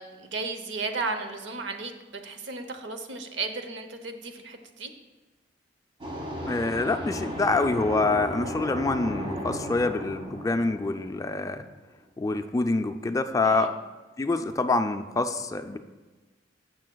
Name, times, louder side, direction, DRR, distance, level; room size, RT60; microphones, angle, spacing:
voice 1, 0.0-4.9 13.4-13.7, right 3 dB, 75° right, 6 dB, 0.8 m, -34 dB
sound 1, 6.0-11.7, equal, 30° right, 1.2 m, -35 dB
voice 2, 6.5-11.6 12.2-13.7 14.2-15.8, left 3 dB, 20° left, 8 dB, 0.3 m, -26 dB
14.0 x 6.3 x 2.3 m, 1.3 s
head